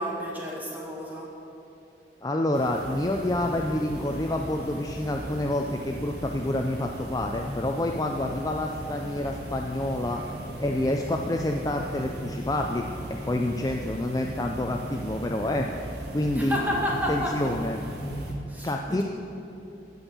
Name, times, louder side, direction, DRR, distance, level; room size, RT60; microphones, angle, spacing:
voice 1, 0.0-1.3 16.3-17.5 18.5-19.0, left 1 dB, 10° right, -3 dB, 1.9 m, -30 dB
voice 2, 2.2-10.2 10.6-15.7 16.1-16.6 16.9-17.8 18.6-19.0, left 1 dB, 20° left, 2 dB, 0.4 m, -28 dB
sound 1, 2.5-18.3, right 1 dB, 75° right, 1.7 m, -38 dB
15.5 x 5.4 x 7.2 m, 2.9 s
head